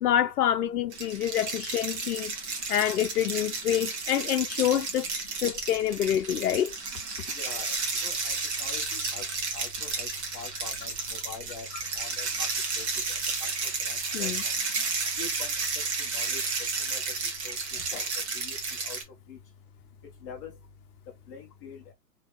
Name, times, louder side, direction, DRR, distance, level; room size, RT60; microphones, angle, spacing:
voice 1, 0.0-2.3 2.7-5.1 5.4-6.7 14.1-14.4 17.9-18.0, left 11 dB, 65° left, 0.6 m, -27 dB
sound 1, 0.9-19.0, right 4 dB, 40° right, 1.4 m, -32 dB
voice 2, 7.4-7.7 8.0-8.3 8.6-9.2 9.5-10.1 10.3-10.9 11.2-11.6 12.0-12.5 12.8-12.9 13.4-13.5 13.9-14.3 15.2-15.5 16.1-16.4 16.9-17.0 17.4-17.6 17.9-18.0 18.3-18.6 18.9-19.0 19.3-19.4 20.2-20.5 21.3-21.9, left 5 dB, 10° left, 0.6 m, -42 dB
3.4 x 3.3 x 3.1 m
hypercardioid pair, 135°, 49 cm